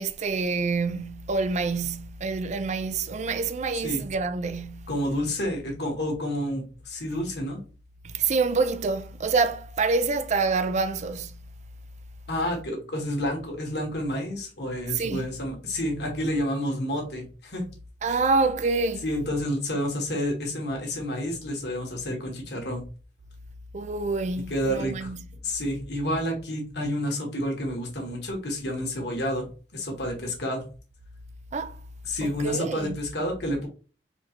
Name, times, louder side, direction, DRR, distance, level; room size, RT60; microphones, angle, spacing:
voice 1, 0.0-4.9 8.0-11.4 14.9-15.3 18.0-19.0 23.7-25.2 31.5-31.7 32.2-33.0, right 4 dB, 40° right, 0.4 m, -27 dB
voice 2, 4.9-7.6 12.3-17.6 18.1-18.2 19.0-22.8 24.5-25.1 25.4-29.5 29.7-30.6 32.0-33.7, equal, 65° left, 1.5 m, -29 dB
4.3 x 3.0 x 2.9 m
head